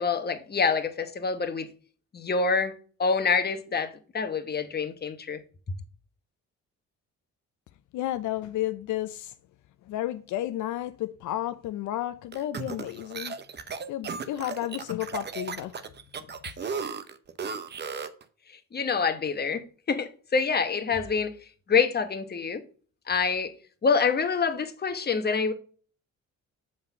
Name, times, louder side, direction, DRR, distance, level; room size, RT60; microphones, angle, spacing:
voice 1, 0.0-1.7 2.1-2.7 3.0-5.4 18.7-21.4 21.7-22.6 23.1-23.5 23.8-25.5, left 5 dB, 35° left, 1.1 m, -26 dB
voice 2, 7.9-9.3 9.9-13.3 13.9-15.7, left 13 dB, 75° left, 0.5 m, -32 dB
sound 1, 12.3-18.2, right 5 dB, 35° right, 0.8 m, -35 dB
7.8 x 3.8 x 5.4 m
cardioid pair, 90°, 30 cm